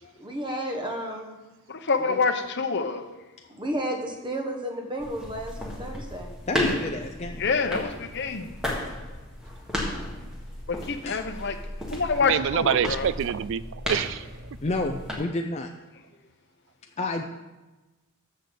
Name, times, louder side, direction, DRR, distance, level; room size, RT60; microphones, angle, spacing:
voice 1, 0.2-1.4 2.1-2.2 3.5-6.3, right 1 dB, 20° right, 2 dB, 1.4 m, -32 dB
voice 2, 1.7-3.0 7.4-8.5 10.7-11.6 11.9-13.1, left 4 dB, 55° left, 7 dB, 0.9 m, -26 dB
sound 1, 5.0-15.2, left 1 dB, 5° right, 1.7 m, -34 dB
voice 3, 6.5-7.5 11.1-11.5 14.6-15.7 17.0-17.2, left 2 dB, 30° left, 2 dB, 0.5 m, -30 dB
voice 4, 12.2-14.3, right 8 dB, 60° right, 18 dB, 0.3 m, -26 dB
14.0 x 6.5 x 4.0 m, 1.1 s
head